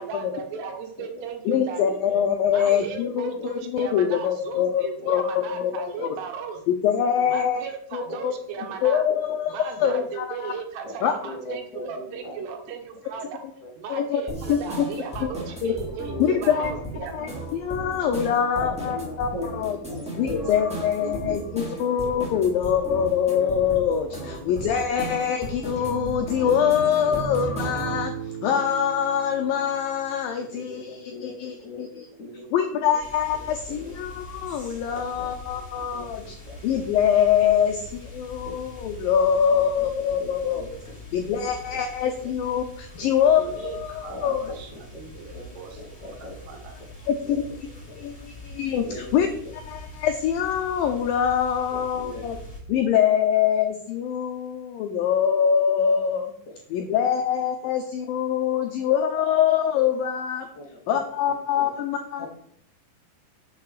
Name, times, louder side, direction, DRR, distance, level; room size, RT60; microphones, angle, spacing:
voice 1, 0.0-2.0 2.5-6.6 7.3-9.0 9.5-13.4 13.8-17.3 43.4-46.7, right 6 dB, 75° right, 4 dB, 3.4 m, -37 dB
voice 2, 1.5-5.8 6.7-7.6 7.9-8.3 8.8-9.5 9.8-10.5 11.0-11.1 13.9-14.2 14.5-14.6 15.2-15.3 15.6-15.7 16.2-16.7 17.1-19.3 19.6-19.8 20.2-28.1 28.4-31.0 31.2-31.9 32.5-36.3 36.6-40.6 41.1-44.4 47.1-47.4 48.0-48.8 49.1-49.3 49.7-52.4 52.7-56.3 56.7-60.5 60.9-62.3, left 8 dB, 80° left, 5 dB, 2.1 m, -24 dB
voice 3, 3.0-3.5 4.0-4.1 5.0-5.1 5.6-5.7 6.0-6.2 6.7-6.8 7.1-7.3 8.1-8.7 9.8-10.0 10.8-10.9 11.2-12.5 13.6-13.7 15.8-17.0 18.3-21.4 21.8-22.7 23.3-23.5 23.9-25.3 26.7-26.8 27.1-27.2 30.4-33.0 33.3-33.5 33.8-34.0 34.9-35.6 35.9-36.1 36.4-36.6 37.4-37.5 38.4-38.5 39.5-39.9 40.2-40.7 41.1-41.2 42.0-42.3 43.0-43.1 44.1-44.6 44.9-45.0 45.3-46.3 47.2-47.3 47.9-48.0 48.8-49.1 51.7-52.2 56.5-56.6 57.1-57.2 60.5-61.0 61.5-61.7 62.2-62.3, left 2 dB, 50° left, -1 dB, 3.9 m, -40 dB
Small Sisters, 14.3-28.0, right 1 dB, ahead, 2.3 m, -36 dB
sound 1, 25.7-30.8, right 5 dB, 40° right, 3.1 m, -37 dB
sound 2, 33.0-52.6, left 2 dB, 15° left, 2.1 m, -43 dB
11.5 x 7.0 x 5.0 m, 0.66 s
omnidirectional pair, 5.0 m